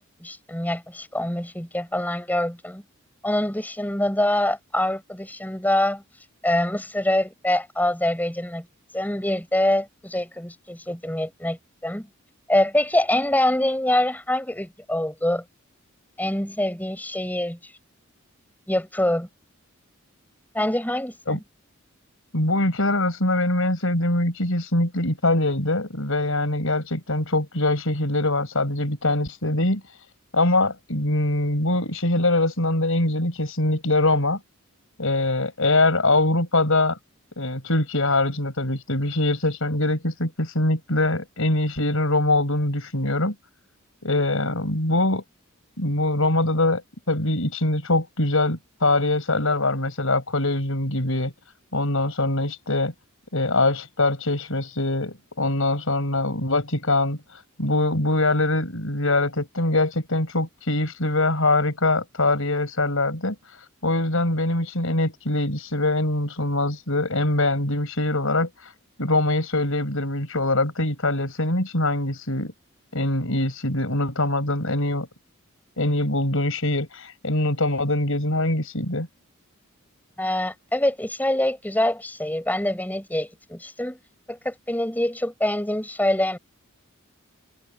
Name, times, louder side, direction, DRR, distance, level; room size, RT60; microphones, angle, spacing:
voice 1, 0.0-2.8 3.2-6.0 6.4-8.7 8.9-12.1 12.5-15.4 16.2-17.6 18.7-19.3 20.5-21.4 80.2-84.0 84.3-86.4, left 1 dB, 10° left, 7.3 m, -25 dB
voice 2, 22.3-30.0 30.3-34.4 35.0-37.0 37.4-43.3 44.0-45.2 45.8-46.8 47.1-51.3 51.7-52.9 53.3-68.7 69.0-72.5 72.9-75.1 75.8-79.1, left 2 dB, 70° left, 5.5 m, -23 dB
head